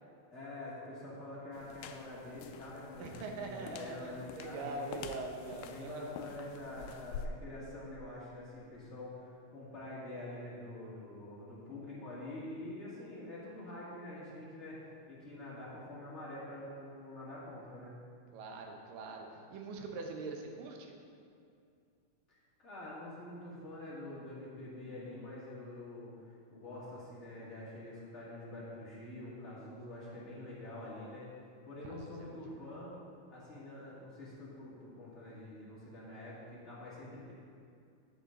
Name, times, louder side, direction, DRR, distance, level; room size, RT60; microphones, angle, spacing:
voice 1, 0.3-5.0 5.6-14.8 15.1-17.9 22.6-31.3 31.6-32.9 33.3-37.3, left 1 dB, 30° left, -8 dB, 1.5 m, -46 dB
sound 1, 1.5-7.3, left 7 dB, 90° left, 1.8 m, -48 dB
voice 2, 3.0-6.1 18.3-21.0 32.3-32.4, right 3 dB, 75° right, 3 dB, 2.5 m, -43 dB
9.9 x 8.2 x 3.9 m, 2.4 s
omnidirectional pair, 4.2 m